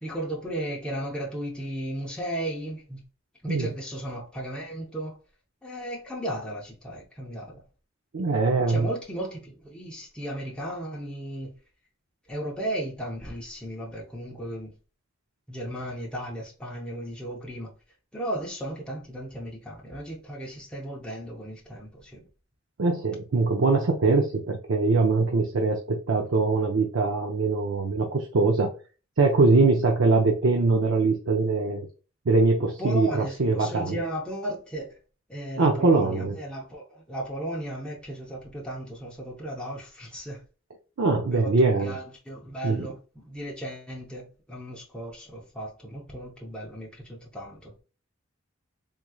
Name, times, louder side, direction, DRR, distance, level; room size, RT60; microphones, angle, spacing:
voice 1, 0.0-3.0 3.4-5.2 5.6-7.6 8.7-11.5 12.3-14.7 15.5-17.7 18.1-22.3 32.8-35.0 35.3-40.4 41.3-47.7, right 1 dB, 5° left, 0.7 m, -35 dB
voice 2, 8.1-8.9 22.8-28.7 29.2-31.9 32.3-34.0 35.6-36.3 41.0-42.0 42.6-42.9, right 3 dB, 80° right, 0.6 m, -22 dB
3.7 x 3.0 x 2.3 m
head